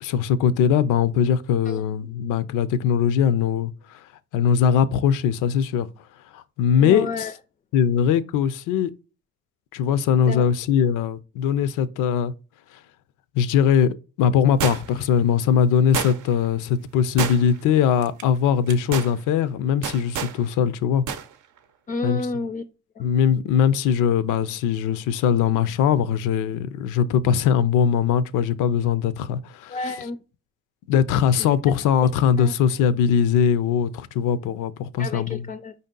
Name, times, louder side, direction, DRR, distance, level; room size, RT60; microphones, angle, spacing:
voice 1, 0.0-4.0 4.3-5.9 6.3-7.3 7.7-8.9 9.7-12.3 13.3-21.0 22.0-22.2 23.0-29.8 30.9-35.4, left 8 dB, 90° left, 0.5 m, -21 dB
voice 2, 6.8-7.3 10.3-10.4 21.9-22.6 23.0-23.1 29.7-30.2 31.4-31.7 32.4-32.5 35.0-35.7, left 3 dB, 25° left, 0.3 m, -30 dB
sound 1, 14.6-15.1 15.9-16.5 17.2-17.7 18.0-18.2 18.7-19.1 19.8-20.4 21.1-21.3 21.6-21.7, right 8 dB, 75° right, 0.6 m, -28 dB
5.1 x 2.7 x 3.7 m
cardioid pair, 90°, 30 cm